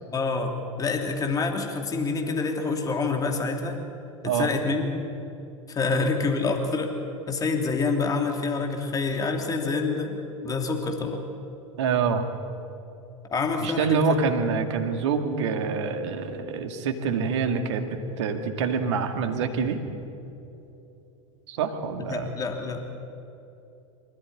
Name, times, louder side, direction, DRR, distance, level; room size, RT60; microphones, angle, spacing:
voice 1, 0.1-3.8 4.2-4.9 5.7-7.0 7.3-11.3 13.3-14.2 22.0-22.8, left 4 dB, 20° left, 3 dB, 3.1 m, -27 dB
voice 2, 11.8-12.2 13.6-19.8 21.5-22.3, right 5 dB, 60° right, 6 dB, 2.1 m, -26 dB
25.0 x 14.0 x 9.9 m, 2.9 s
figure-of-eight pair, 85°, 17 cm